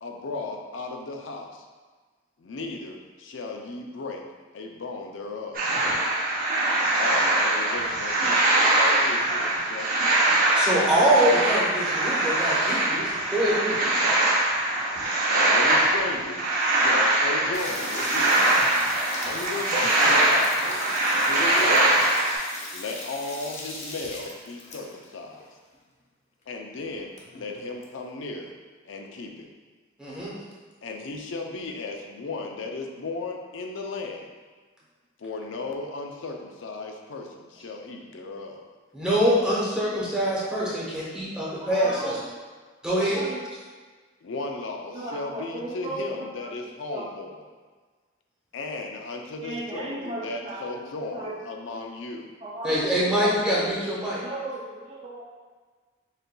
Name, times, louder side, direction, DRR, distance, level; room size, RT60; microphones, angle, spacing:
voice 1, 0.0-1.6 2.4-4.3 4.5-5.6 7.0-10.3 15.3-18.4 19.2-22.0 22.7-25.4 26.5-28.5 28.8-29.5 30.8-34.3 35.2-38.7 44.2-47.4 48.5-52.3, left 3 dB, 80° left, 2 dB, 0.5 m, -36 dB
sound 1, 5.5-22.4, right 1 dB, 45° right, 0.8 m, -22 dB
voice 2, 10.5-13.8 30.0-30.3 38.9-42.2 42.8-43.2 52.6-54.2, equal, 5° right, -7 dB, 0.9 m, -24 dB
sound 2, 17.5-25.0 25.4-25.5 25.7-25.8 26.4-26.5 26.8-27.8, left 2 dB, 40° left, 0.6 m, -39 dB
voice 3, 41.6-42.4 42.9-43.4 44.9-47.1 49.4-50.7 51.1-51.4 52.4-53.3 54.1-55.2, right 1 dB, 30° right, -6 dB, 0.4 m, -36 dB
6.5 x 2.5 x 2.2 m, 1.4 s
head